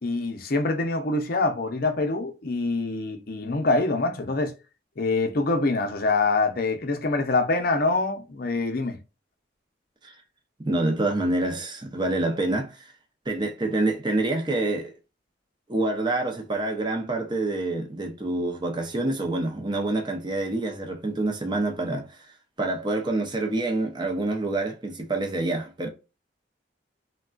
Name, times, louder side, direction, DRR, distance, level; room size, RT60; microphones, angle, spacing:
voice 1, 0.0-4.5 5.0-9.0, left 3 dB, 50° left, 0.6 m, -25 dB
voice 2, 10.6-12.9 13.3-14.9 15.7-22.2 22.6-25.9, right 2 dB, 25° right, 0.6 m, -27 dB
3.5 x 2.2 x 2.3 m
head